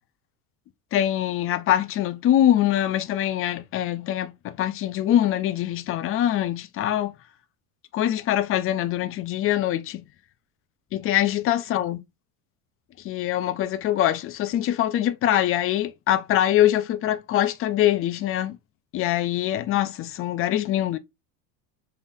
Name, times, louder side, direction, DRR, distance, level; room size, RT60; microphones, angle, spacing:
voice 1, 0.9-7.2 7.9-10.0 10.9-12.0 13.0-18.6 18.9-21.0, left 12 dB, 30° left, 0.4 m, -23 dB
3.8 x 3.4 x 2.6 m
supercardioid pair, 120°, 48 cm